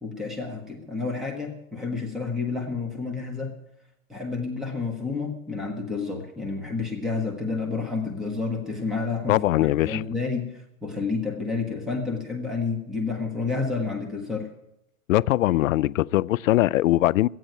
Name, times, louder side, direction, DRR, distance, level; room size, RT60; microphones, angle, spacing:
voice 1, 0.0-3.5 4.1-14.5, left 4 dB, ahead, 0.9 m, -30 dB
voice 2, 9.3-10.0 15.1-17.3, left 15 dB, 70° left, 0.5 m, -21 dB
13.5 x 9.3 x 8.8 m
hypercardioid pair, 155°, 41 cm